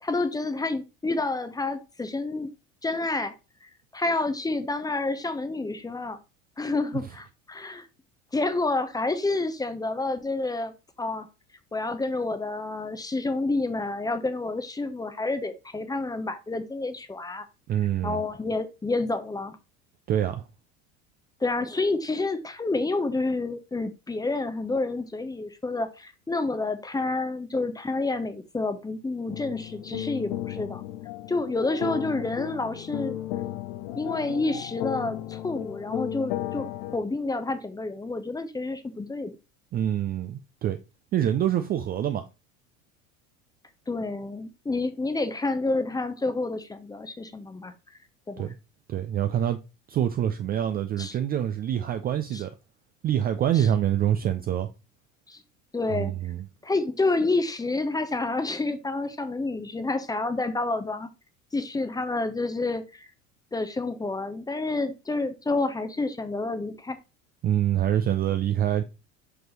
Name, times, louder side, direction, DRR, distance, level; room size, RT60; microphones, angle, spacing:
voice 1, 0.0-2.5 2.8-3.3 3.6-6.2 6.6-7.9 8.3-10.7 11.0-11.3 11.7-17.5 18.0-19.6 21.4-30.8 31.3-33.2 34.0-39.4 43.9-47.7 48.3-48.5 51.0-51.1 52.3-52.4 53.5-53.7 55.3-55.4 55.7-56.1 56.6-61.1 61.5-63.1 63.5-67.0, left 3 dB, 10° left, 0.7 m, -29 dB
voice 2, 17.7-18.2 20.1-20.4 39.7-40.8 41.1-42.3 48.4-48.5 48.9-49.6 49.9-52.5 53.0-54.7 55.9-56.4 67.4-68.8, right 10 dB, 25° right, 0.4 m, -25 dB
sound 1, 29.3-37.0, left 13 dB, 50° left, 0.7 m, -34 dB
6.0 x 4.8 x 3.2 m
figure-of-eight pair, 75°, 41 cm